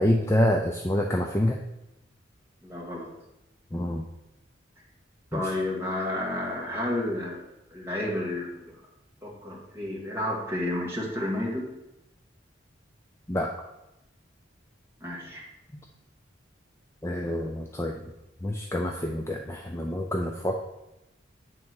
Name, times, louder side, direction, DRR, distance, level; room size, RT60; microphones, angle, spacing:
voice 1, 0.0-1.6 3.7-4.0 5.3-5.4 13.3-13.5 17.0-18.0 18.4-20.7, left 1 dB, 15° left, 1 dB, 0.4 m, -27 dB
voice 2, 2.6-3.1 5.3-7.4 7.7-8.7 9.2-11.7 15.0-15.4, left 1 dB, 10° right, -3 dB, 1.7 m, -31 dB
9.0 x 3.7 x 6.2 m, 0.92 s
head